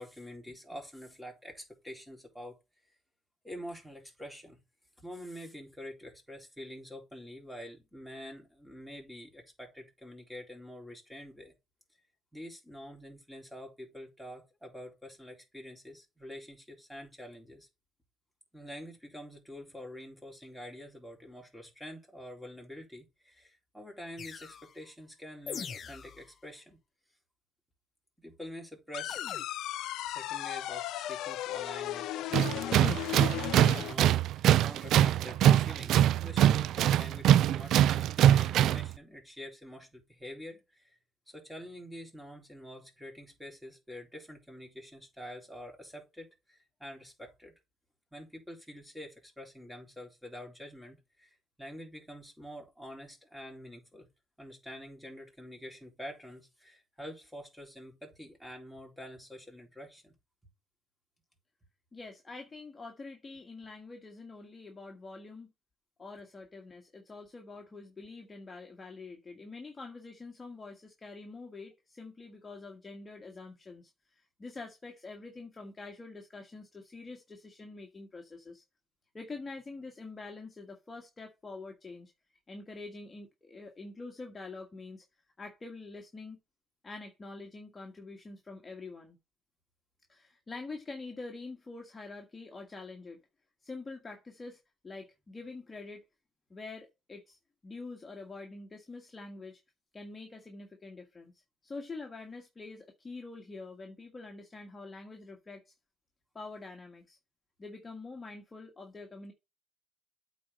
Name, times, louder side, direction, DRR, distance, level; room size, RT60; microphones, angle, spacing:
voice 1, 0.0-2.6 3.4-4.6 5.0-11.5 12.3-17.7 18.5-26.8 28.2-29.2 30.0-41.0 41.3-47.5 48.1-54.1 54.4-60.1, equal, ahead, 4.1 m, -47 dB
sound 1, 24.2-24.7 25.5-26.3 29.1-29.4, left 7 dB, 50° left, 0.8 m, -42 dB
sound 2, 28.9-33.9, left 14 dB, 75° left, 0.4 m, -36 dB
Tools, 32.3-38.9, right 11 dB, 70° right, 0.4 m, -23 dB
voice 2, 61.9-65.5 66.0-78.6 79.1-82.1 82.5-85.0 85.4-86.4 86.8-89.2 90.1-93.2 93.6-96.0 96.5-97.4 97.6-99.6 99.9-101.3 101.6-105.7 106.3-107.2 107.6-109.3, left 3 dB, 30° left, 1.6 m, -46 dB
8.3 x 4.2 x 5.4 m
supercardioid pair, 60°, 0 cm